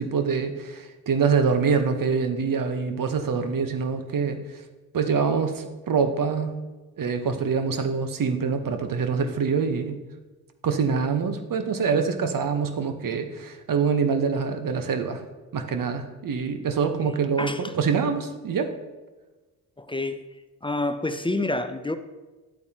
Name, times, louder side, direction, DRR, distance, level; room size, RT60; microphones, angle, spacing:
voice 1, 0.0-4.4 4.9-6.5 7.0-10.0 10.6-15.2 15.5-18.7, right 5 dB, 45° right, 7 dB, 1.1 m, -25 dB
voice 2, 17.0-17.8 19.8-20.2 20.6-22.0, left 2 dB, 10° left, 10 dB, 0.5 m, -28 dB
11.0 x 8.2 x 2.9 m, 1.2 s
hypercardioid pair, 45°, 47 cm